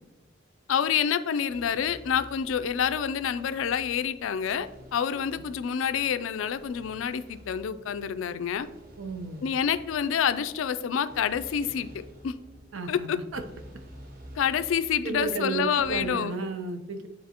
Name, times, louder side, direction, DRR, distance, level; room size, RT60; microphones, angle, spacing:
voice 1, 0.7-8.7 9.4-12.3 12.9-13.2 14.4-16.4, left 8 dB, 85° left, 12 dB, 0.4 m, -28 dB
sound 1, 1.5-16.1, equal, 45° right, 0.9 m, -50 dB
voice 2, 9.0-9.4 12.7-13.4 15.0-15.6 15.9-17.1, right 4 dB, 80° right, 7 dB, 0.7 m, -33 dB
9.4 x 4.1 x 2.9 m, 1.0 s
head